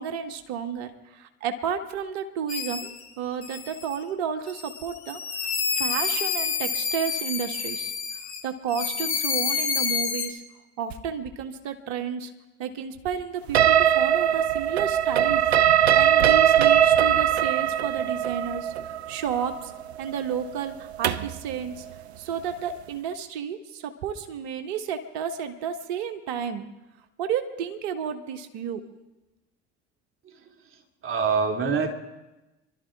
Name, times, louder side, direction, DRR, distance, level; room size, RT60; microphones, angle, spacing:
voice 1, 0.0-7.9 8.4-10.4 10.8-12.3 12.6-19.7 20.0-21.8 22.2-26.7 27.2-28.8, right 7 dB, 65° right, 7 dB, 1.4 m, -32 dB
sound 1, 2.5-3.0 3.4-4.0 4.5-8.4 8.7-10.3, left 6 dB, 85° left, 1.7 m, -29 dB
sound 2, 13.5-21.4, right 10 dB, 90° right, 0.5 m, -21 dB
voice 2, 30.2-32.0, right 5 dB, 40° right, 3 dB, 2.5 m, -27 dB
27.0 x 12.0 x 3.6 m, 1.0 s
hypercardioid pair, 65°, 32 cm